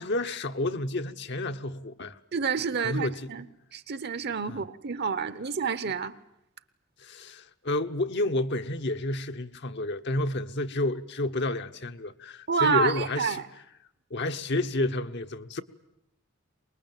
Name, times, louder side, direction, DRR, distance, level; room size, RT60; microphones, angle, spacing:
voice 1, 0.0-2.2 2.8-3.3 4.5-4.6 7.0-13.4 14.1-15.6, left 2 dB, 60° left, 1.1 m, -30 dB
voice 2, 2.3-3.4 3.7-6.1 12.5-13.4, right 5 dB, 55° right, 1.0 m, -28 dB
24.0 x 21.0 x 9.2 m
head